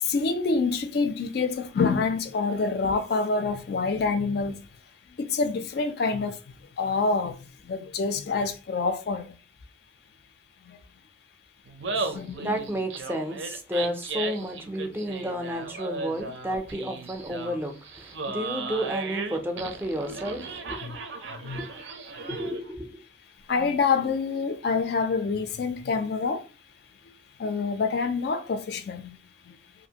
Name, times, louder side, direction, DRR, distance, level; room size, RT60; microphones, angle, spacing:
voice 1, 0.0-4.6 5.2-6.4 6.8-7.4 7.6-9.3 11.9-12.6 20.8-21.0 21.4-21.6 23.5-26.4 27.4-29.1, left 4 dB, 55° left, 0.3 m, -26 dB
Laughter, 11.7-22.7, right 4 dB, 85° right, 0.5 m, -36 dB
voice 2, 12.0-20.8 21.5-21.7 22.3-22.9, equal, 10° right, 0.4 m, -32 dB
2.6 x 2.5 x 2.8 m
head